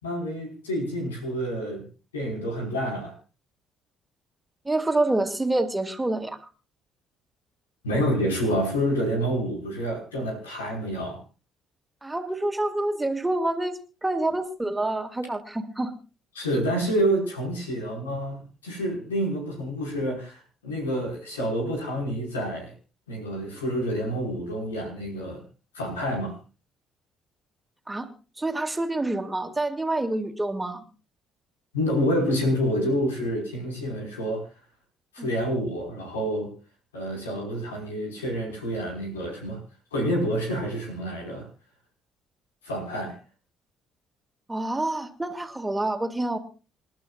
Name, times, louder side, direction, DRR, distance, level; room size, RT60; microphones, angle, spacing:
voice 1, 0.0-1.8 2.1-3.1 7.8-11.2 16.4-22.7 23.1-25.4 25.7-26.3 31.7-34.4 35.1-36.5 36.9-39.6 39.9-41.5 42.6-43.1, equal, 90° left, 0 dB, 5.5 m, -28 dB
voice 2, 4.6-6.4 12.0-15.9 27.9-28.1 28.4-30.8 35.2-35.3 44.5-46.4, right 2 dB, 15° right, 6 dB, 2.5 m, -27 dB
28.5 x 12.0 x 2.5 m, 0.34 s
hypercardioid pair, 50°, 0 cm